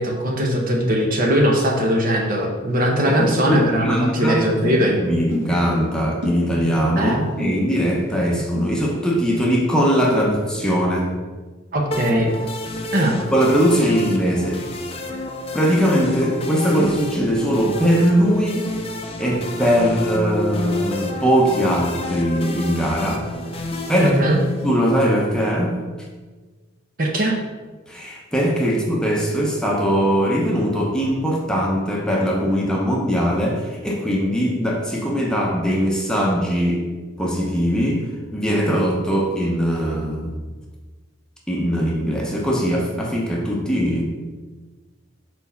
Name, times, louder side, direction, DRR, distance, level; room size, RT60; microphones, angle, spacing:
voice 1, 0.0-5.0 7.0-7.2 11.7-12.3 12.9-13.2 24.0-24.4 27.0-27.4, equal, 45° right, 1 dB, 0.9 m, -20 dB
sound 1, 2.8-7.5 7.8-8.6, equal, 60° right, 1.7 m, -30 dB
voice 2, 3.5-4.5 5.0-11.2 13.3-14.6 15.5-18.7 19.2-23.3 23.9-24.2 24.6-25.8 27.9-36.9 37.2-38.0 38.3-40.3 41.5-44.0, equal, 5° left, -3 dB, 0.8 m, -20 dB
sound 2, 11.9-24.9, left 2 dB, 30° left, 0.6 m, -29 dB
4.4 x 4.1 x 5.7 m, 1.3 s
head